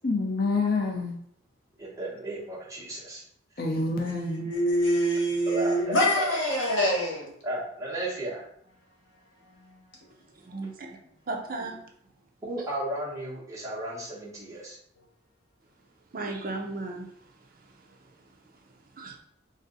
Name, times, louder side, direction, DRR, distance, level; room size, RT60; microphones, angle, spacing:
voice 1, 0.0-1.2 3.6-4.5, left 3 dB, 50° left, 0.6 m, -27 dB
voice 2, 1.8-3.2 5.4-6.3 7.4-8.5 12.4-14.8, right 1 dB, 15° right, 1.2 m, -34 dB
voice 3, 4.0-7.3 9.6-9.8, equal, 65° left, 1.2 m, -25 dB
voice 4, 10.4-11.0 11.3-11.8 16.1-17.1 19.0-19.2, right 2 dB, 45° right, 0.5 m, -35 dB
3.4 x 2.6 x 3.9 m
head